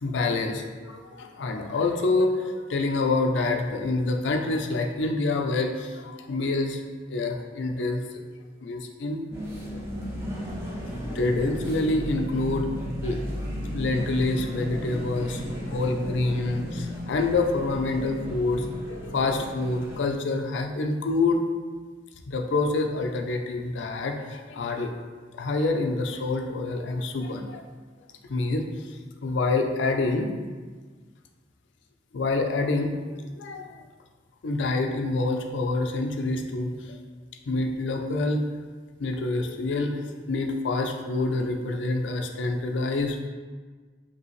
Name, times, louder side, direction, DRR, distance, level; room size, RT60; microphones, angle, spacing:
voice 1, 0.0-6.8 7.1-8.0 8.6-9.3 10.6-10.7 11.0-12.7 13.0-13.2 13.7-21.4 22.3-24.9 25.3-27.6 28.3-28.7 29.2-30.3 32.1-33.8 34.4-37.0 37.5-38.5 39.0-43.3, left 2 dB, 65° left, 4 dB, 0.4 m, -27 dB
sound 1, 9.3-20.0, equal, 15° right, 0.6 m, -34 dB
5.3 x 2.7 x 3.0 m, 1.5 s
head